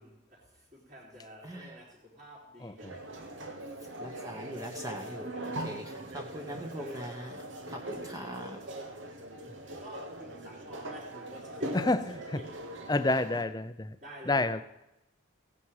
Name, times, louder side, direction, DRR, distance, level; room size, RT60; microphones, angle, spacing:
voice 1, 0.0-4.1 5.3-5.7 6.5-7.4 9.8-11.9 12.3-12.5 14.0-14.6, equal, 40° right, 3.5 m, -50 dB
voice 2, 1.4-1.9 4.0-8.6, equal, 15° right, 1.1 m, -42 dB
sound 1, 2.8-13.4, right 1 dB, 70° right, 1.4 m, -41 dB
voice 3, 11.7-12.4 12.9-14.0 14.3-14.6, left 2 dB, 20° left, 0.6 m, -29 dB
15.5 x 9.4 x 4.8 m
head